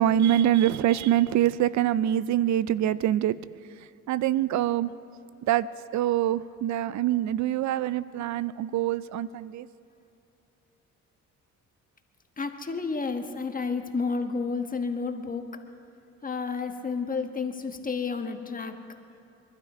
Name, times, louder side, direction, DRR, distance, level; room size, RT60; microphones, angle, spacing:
voice 1, 0.0-4.9 5.4-9.7, right 12 dB, 70° right, 17 dB, 0.5 m, -25 dB
voice 2, 12.4-15.6 16.2-18.8, left 4 dB, 30° left, 6 dB, 1.3 m, -31 dB
23.5 x 12.0 x 4.9 m, 2.8 s
cardioid pair, 90°, 30 cm